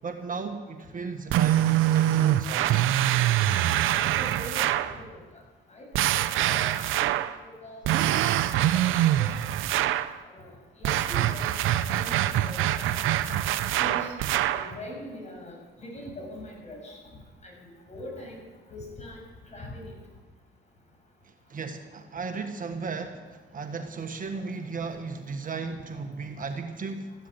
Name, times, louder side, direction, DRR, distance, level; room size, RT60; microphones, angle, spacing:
voice 1, 0.0-2.9 21.2-27.1, right 4 dB, 45° right, 6 dB, 1.4 m, -35 dB
sound 1, 1.3-5.0 5.9-7.4 7.8-10.1 10.8-14.7, right 13 dB, 85° right, 0.7 m, -24 dB
voice 2, 4.2-5.2 5.7-6.1 6.4-6.6 7.0-7.1 7.6-8.0 8.7-8.9 9.1-9.6 10.3-13.0 13.7-14.1 14.5-17.0 17.4-18.4 18.7-19.2 19.5-19.9, left 1 dB, 35° left, 0 dB, 6.9 m, -42 dB
14.5 x 12.5 x 7.9 m, 1.4 s
cardioid pair, 90°, 20 cm